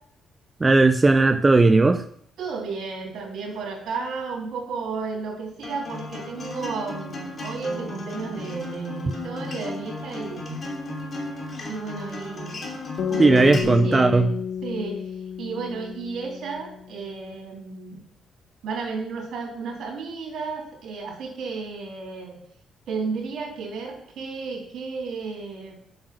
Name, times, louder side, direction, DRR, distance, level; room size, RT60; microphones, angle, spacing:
voice 1, 0.6-2.0 13.2-14.3, right 3 dB, 25° right, 10 dB, 0.5 m, -17 dB
voice 2, 2.4-10.7 11.6-12.6 13.1-14.3 14.6-15.0 15.4-18.0 18.6-22.4 22.9-25.7, right 4 dB, 70° right, 0 dB, 3.4 m, -33 dB
Acoustic guitar, 5.6-13.6, left 2 dB, 40° left, 2.9 m, -35 dB
sound 1, 13.0-17.2, left 8 dB, 70° left, 1.0 m, -31 dB
7.9 x 6.3 x 6.2 m, 0.66 s
cardioid pair, 90°, 0 cm